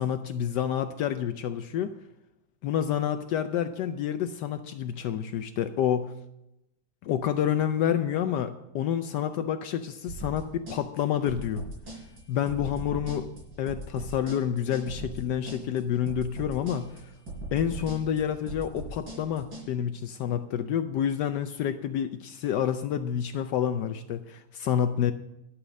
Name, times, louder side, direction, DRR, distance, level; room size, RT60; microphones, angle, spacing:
voice 1, 0.0-1.9 2.6-6.1 7.0-11.6 12.3-13.3 13.6-17.1 17.5-25.1, left 9 dB, 75° left, 9 dB, 1.1 m, -28 dB
sound 1, 10.1-19.7, right 2 dB, 80° right, 4.7 m, -39 dB
11.5 x 6.4 x 6.3 m, 0.87 s
omnidirectional pair, 2.0 m